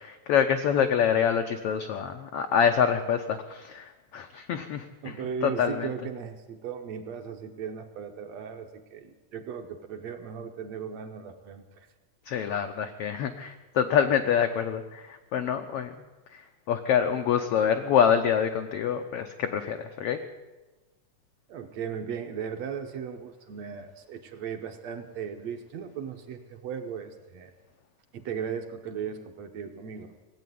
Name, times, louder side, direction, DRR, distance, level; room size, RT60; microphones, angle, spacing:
voice 1, 0.0-5.1 5.4-5.9 12.3-15.9 16.3-20.2, left 8 dB, 85° left, 7 dB, 1.3 m, -26 dB
voice 2, 5.0-11.9 21.5-27.5 28.1-30.1, right 7 dB, 70° right, 5 dB, 1.8 m, -37 dB
18.5 x 8.4 x 9.3 m, 1.2 s
omnidirectional pair, 3.6 m